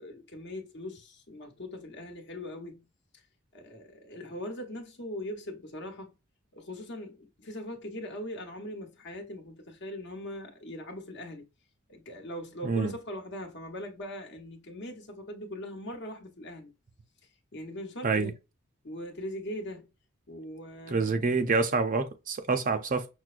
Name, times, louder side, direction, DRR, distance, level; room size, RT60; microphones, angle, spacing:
voice 1, 0.0-2.8 3.1-3.2 3.5-6.1 6.5-11.5 11.9-16.7 17.5-18.3 18.8-19.9 20.3-21.5, left 1 dB, 55° left, 1.0 m, -41 dB
voice 2, 12.6-12.9 18.0-18.3 20.9-23.1, right 4 dB, 40° right, 0.5 m, -27 dB
5.9 x 2.0 x 2.5 m
head